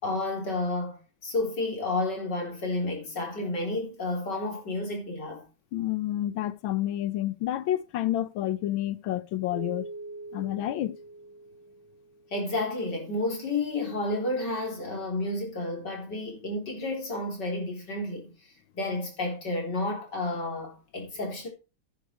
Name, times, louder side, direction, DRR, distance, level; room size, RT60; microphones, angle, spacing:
voice 1, 0.0-5.4 12.3-18.3 18.7-21.5, left 2 dB, 50° left, 4.4 m, -31 dB
voice 2, 5.7-9.9 10.3-11.0, left 13 dB, 75° left, 1.5 m, -29 dB
Keyboard (musical), 9.5-12.5, right 2 dB, 10° right, 3.1 m, -43 dB
11.5 x 9.5 x 4.6 m
omnidirectional pair, 2.4 m